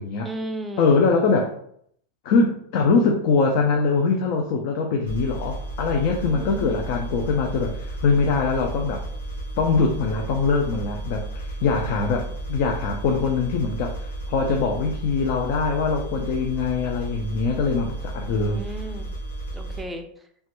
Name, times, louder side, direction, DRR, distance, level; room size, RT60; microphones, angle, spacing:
voice 1, 0.2-1.0 6.3-6.9 11.8-12.3 18.3-19.1 19.5-20.1, right 1 dB, 10° right, 4 dB, 0.4 m, -35 dB
voice 2, 0.8-1.5 2.2-9.0 9.6-18.6, left 4 dB, 55° left, 2 dB, 0.4 m, -23 dB
sound 1, 5.0-19.8, right 2 dB, 90° left, 0.9 m, -33 dB
3.0 x 2.2 x 3.0 m, 0.67 s
supercardioid pair, 135°, 0 cm